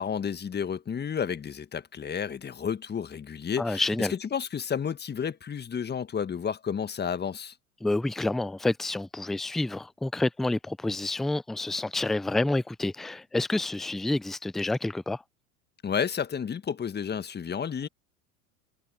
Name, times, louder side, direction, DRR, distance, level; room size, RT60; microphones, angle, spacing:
voice 1, 0.0-7.5 15.8-17.9, left 7 dB, 25° left, 1.7 m, -31 dB
voice 2, 3.6-4.1 7.8-15.2, left 2 dB, ahead, 0.4 m, -28 dB
hypercardioid pair, 85°, 44 cm